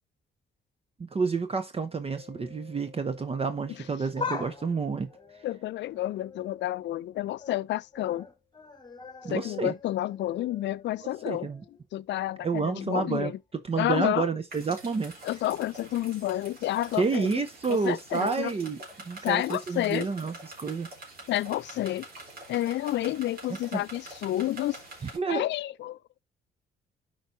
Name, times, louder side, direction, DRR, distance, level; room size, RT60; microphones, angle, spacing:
voice 1, 1.1-5.1 9.2-9.7 11.2-11.6 12.4-15.1 17.0-20.9 23.7-23.8 25.0-25.4, right 4 dB, 30° right, 0.7 m, -29 dB
Mallet percussion, 2.1-8.5, left 11 dB, 5° right, 3.4 m, -58 dB
sound 1, 4.2-6.8 7.2-7.6 7.9-11.9 12.2-12.3 13.3-13.4, left 5 dB, 20° left, 1.2 m, -42 dB
voice 2, 5.4-8.3 9.3-11.5 11.9-13.4 13.8-14.3 15.2-17.4 17.7-18.5 19.2-20.1 21.3-22.1 22.5-24.8 25.3-26.0, left 14 dB, 65° left, 0.4 m, -30 dB
sound 2, 14.5-25.2, right 2 dB, 50° right, 3.5 m, -46 dB
12.0 x 4.6 x 2.6 m
cardioid pair, 90°, 20 cm